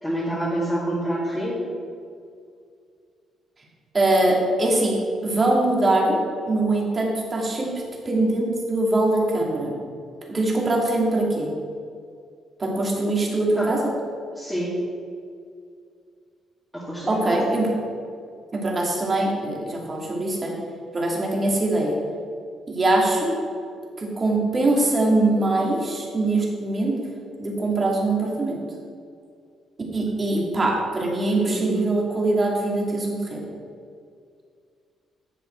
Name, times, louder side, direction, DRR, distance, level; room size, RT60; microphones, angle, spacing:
voice 1, 0.0-1.7 13.6-13.7 14.4-14.8 16.7-17.5 30.3-30.4 31.4-31.8, right 1 dB, ahead, -9 dB, 2.2 m, -27 dB
voice 2, 3.9-5.0 5.2-6.2 6.4-7.7 8.0-9.7 10.3-11.5 12.6-13.8 17.1-17.7 18.5-20.5 20.9-22.0 22.7-23.3 24.0-26.9 27.4-28.6 29.9-33.4, right 2 dB, 35° right, -1 dB, 2.4 m, -22 dB
10.0 x 7.2 x 4.5 m, 2.3 s
cardioid pair, 90°, 0 cm